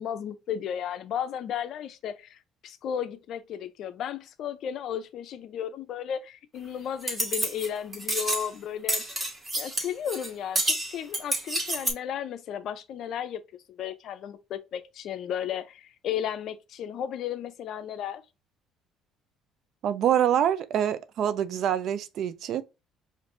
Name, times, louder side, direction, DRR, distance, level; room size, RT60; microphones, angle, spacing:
voice 1, 0.0-9.0 9.6-13.4 13.7-18.2, left 9 dB, 60° left, 0.5 m, -34 dB
sound 1, 7.0-7.7 7.9-8.5 8.9-10.3 10.5-11.9, right 1 dB, 20° right, 1.5 m, -29 dB
voice 2, 19.8-22.6, right 10 dB, 60° right, 0.4 m, -25 dB
5.1 x 2.6 x 2.6 m
cardioid pair, 100°, 0 cm